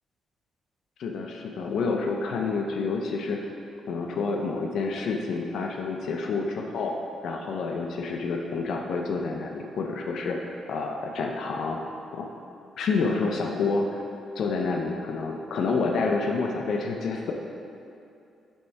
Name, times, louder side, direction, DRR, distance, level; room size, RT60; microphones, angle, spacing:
voice 1, 1.0-3.4 3.9-6.9 7.2-10.4 10.7-11.8 12.1-12.3 12.8-14.0 14.4-17.3, left 4 dB, 70° left, 1 dB, 0.5 m, -28 dB
7.1 x 3.1 x 4.5 m, 2.6 s
cardioid pair, 130°, 0 cm